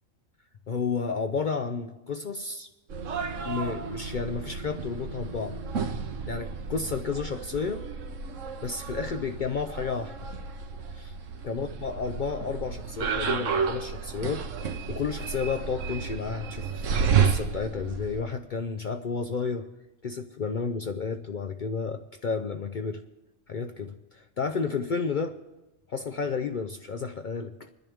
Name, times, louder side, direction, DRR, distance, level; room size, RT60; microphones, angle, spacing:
voice 1, 0.7-2.7 3.4-5.6 6.3-7.9 8.6-10.1 10.9-11.1 11.4-14.5 14.9-16.7 17.2-19.7 20.0-23.0 23.5-25.3 25.9-27.7, left 5 dB, 55° left, 7 dB, 0.6 m, -31 dB
sound 1, 2.9-18.2, right 6 dB, 75° right, 1.3 m, -31 dB
27.0 x 10.5 x 3.6 m, 1.0 s
omnidirectional pair, 1.3 m